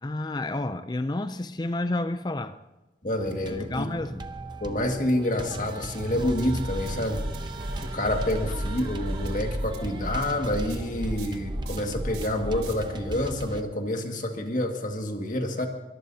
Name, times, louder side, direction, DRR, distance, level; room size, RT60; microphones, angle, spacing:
voice 1, 0.0-2.6 3.5-4.2, left 2 dB, 25° left, 0.4 m, -30 dB
voice 2, 3.0-3.9 4.6-7.2 7.8-15.7, left 1 dB, 45° left, 2.0 m, -28 dB
sound 1, 3.2-13.6, right 2 dB, 25° right, 0.8 m, -38 dB
sound 2, 6.0-12.7, equal, 75° right, 3.3 m, -33 dB
23.5 x 21.5 x 2.8 m
head